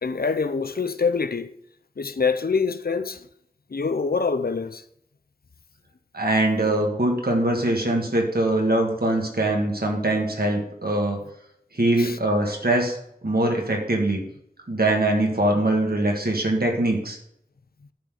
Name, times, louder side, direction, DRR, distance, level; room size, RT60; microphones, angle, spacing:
voice 1, 0.0-1.5 2.0-3.3 3.7-4.8 12.0-12.2, left 5 dB, 80° left, 0.5 m, -25 dB
voice 2, 6.1-11.2 11.8-13.0 13.2-14.2 14.7-17.2, right 1 dB, 85° right, 1.8 m, -22 dB
11.5 x 4.0 x 6.5 m
wide cardioid pair, 40°, 15 cm